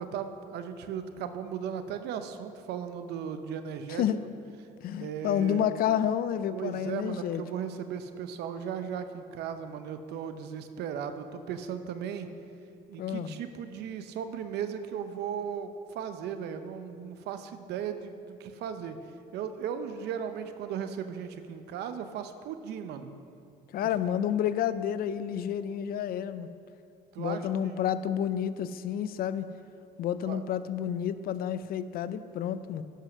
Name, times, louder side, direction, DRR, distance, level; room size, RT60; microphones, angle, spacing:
voice 1, 0.0-4.0 5.0-5.7 6.5-12.3 12.9-19.0 19.3-23.1 23.8-23.9 27.1-27.8 30.3-30.4, right 8 dB, 80° right, 9 dB, 0.7 m, -36 dB
voice 2, 3.9-4.2 4.8-7.4 13.0-13.3 23.7-26.5 27.2-29.5 30.0-32.8, left 9 dB, 60° left, 14 dB, 0.5 m, -30 dB
11.0 x 5.6 x 6.2 m, 2.6 s
cardioid pair, 110°, 17 cm